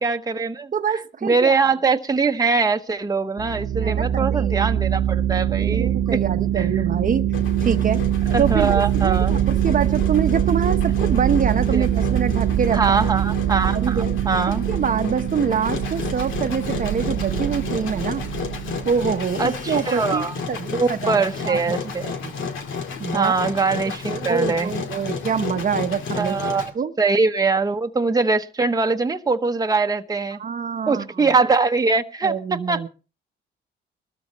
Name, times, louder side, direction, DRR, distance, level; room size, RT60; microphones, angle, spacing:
voice 1, 0.0-0.7 1.2-6.2 6.6-6.7 8.3-9.4 11.7-11.9 12.7-14.7 19.4-20.3 20.7-22.1 23.1-24.7 26.1-26.7 27.0-30.4 30.9-32.9, right 4 dB, 20° right, 1.0 m, -22 dB
voice 2, 0.7-1.6 3.8-4.7 5.6-7.3 7.6-8.0 8.4-12.8 13.7-14.2 14.5-18.2 18.8-21.7 22.0-22.3 23.0-23.3 24.1-26.3 26.7-26.9 30.4-31.3 32.2-32.9, right 6 dB, 40° right, 0.9 m, -25 dB
sound 1, 3.4-19.6, right 11 dB, 70° right, 1.0 m, -23 dB
Engine, 7.3-26.7, left 5 dB, 80° left, 2.3 m, -32 dB
20.5 x 13.0 x 3.0 m
cardioid pair, 90°, 20 cm